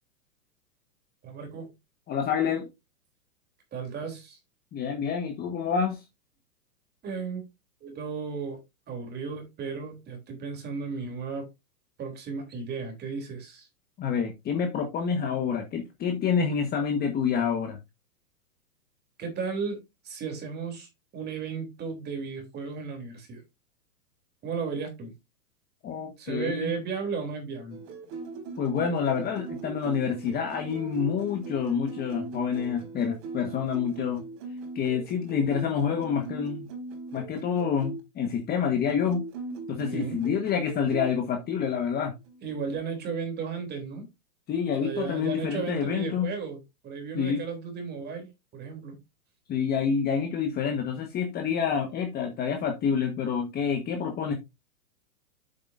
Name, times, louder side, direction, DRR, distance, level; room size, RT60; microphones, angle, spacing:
voice 1, 1.2-1.7 3.7-4.4 7.0-7.4 7.8-8.6 8.9-11.5 12.0-13.7 19.2-23.4 24.4-25.1 26.2-27.8 39.9-40.2 42.4-44.1 44.8-49.0, right 5 dB, 20° right, 3.3 m, -35 dB
voice 2, 2.1-2.7 4.7-6.0 14.0-17.8 25.8-26.7 28.6-34.2 34.7-36.7 37.1-39.2 39.7-42.1 44.5-46.3 47.1-47.4 49.5-54.3, left 7 dB, 20° left, 1.4 m, -28 dB
sound 1, 27.7-38.0 38.8-41.1 42.2-42.8, right 3 dB, 35° right, 4.7 m, -39 dB
7.9 x 7.9 x 2.6 m
hypercardioid pair, 140°, 47 cm